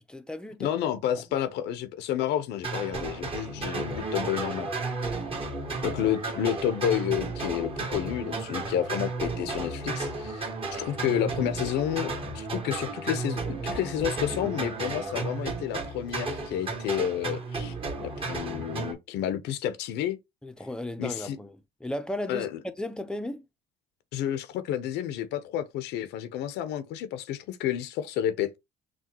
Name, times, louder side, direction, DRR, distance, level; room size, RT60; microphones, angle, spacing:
voice 1, 0.1-0.8 4.9-5.3 20.4-21.6 21.8-22.5 22.8-23.4, left 1 dB, 5° left, 0.6 m, -35 dB
voice 2, 0.6-4.7 5.8-10.5 10.8-17.7 18.0-20.2 21.0-21.4 22.3-22.6 24.1-28.6, left 10 dB, 85° left, 0.7 m, -30 dB
sound 1, 2.6-18.9, right 3 dB, 30° right, 1.5 m, -33 dB
6.1 x 2.3 x 2.9 m
cardioid pair, 110°, 17 cm